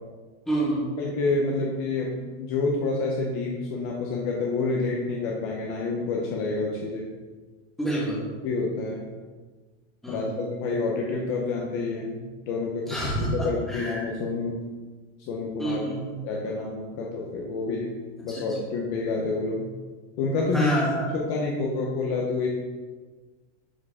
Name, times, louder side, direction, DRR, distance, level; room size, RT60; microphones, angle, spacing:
voice 1, 0.5-0.9 7.8-8.2 10.0-10.2 12.9-14.1 15.6-16.1 20.5-21.1, right 1 dB, ahead, -7 dB, 1.5 m, -27 dB
voice 2, 1.0-7.1 8.4-9.1 10.1-14.6 15.3-15.8 16.2-17.9 18.2-19.7 20.2-20.7 21.1-22.5, left 3 dB, 30° left, -1 dB, 0.8 m, -28 dB
11.0 x 4.6 x 3.6 m, 1.4 s
supercardioid pair, 180°, 35 cm